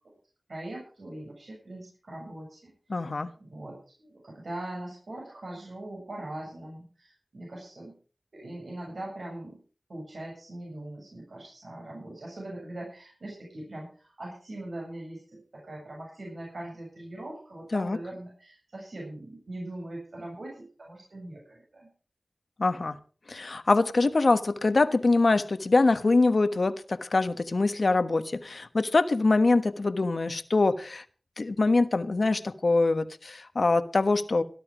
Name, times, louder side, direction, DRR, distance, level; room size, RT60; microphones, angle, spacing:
voice 1, 0.5-3.1 3.4-8.0 8.3-9.6 9.9-21.9, right 1 dB, 75° right, -2 dB, 7.6 m, -41 dB
voice 2, 2.9-3.3 17.7-18.0 22.6-23.0 23.3-31.0 31.4-34.4, left 3 dB, 65° left, 11 dB, 1.2 m, -24 dB
18.0 x 12.0 x 5.0 m, 0.39 s
wide cardioid pair, 70°, 0 cm